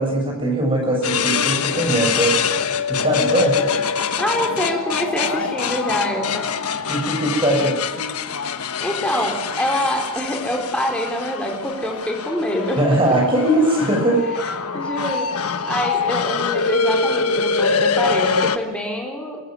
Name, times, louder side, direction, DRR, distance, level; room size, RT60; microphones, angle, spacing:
voice 1, 0.0-2.6 2.9-3.6 6.9-7.8 12.8-14.2, right 1 dB, 25° right, 0 dB, 7.3 m, -20 dB
sound 1, 1.0-18.6, left 5 dB, 90° left, 1.3 m, -24 dB
voice 2, 4.0-6.5 8.8-12.8 13.1-13.2 14.7-15.3 15.7-19.4, equal, 5° left, 0 dB, 4.7 m, -25 dB
25.5 x 14.5 x 9.7 m, 1.2 s
head